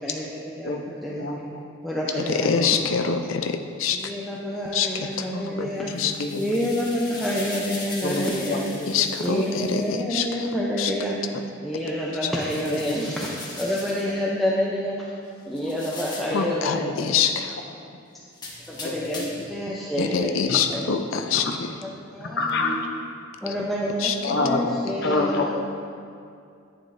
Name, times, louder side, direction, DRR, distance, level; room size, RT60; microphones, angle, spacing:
voice 1, 0.0-0.7 1.0-1.3 1.8-2.5 3.9-5.9 6.4-8.6 9.2-11.2 11.6-15.1 15.4-17.1 18.7-20.3 20.7-21.0 21.8-22.9 23.4-25.5, equal, ahead, -5 dB, 0.7 m, -28 dB
voice 2, 0.6-1.6 2.0-2.7 3.1-3.2 5.4-6.5 8.0-9.1 9.8-9.9 12.7-13.0 16.3-16.4 16.8-16.9 17.8-18.0 18.8-19.3 20.5-20.6 22.2-22.9 24.2-24.6 25.0-25.5, left 2 dB, 60° left, 2 dB, 0.8 m, -29 dB
voice 3, 2.2-4.0 4.7-5.4 5.9-6.1 8.9-10.5 10.8-10.9 12.2-12.3 16.3-17.6 20.0-21.5 24.0-24.4, left 7 dB, 90° left, 7 dB, 0.5 m, -25 dB
sound 1, 5.8-9.9 12.3-14.1 15.6-16.4 18.3-19.5, left 2 dB, 20° left, 1.3 m, -39 dB
10.5 x 9.4 x 2.7 m, 2.4 s
head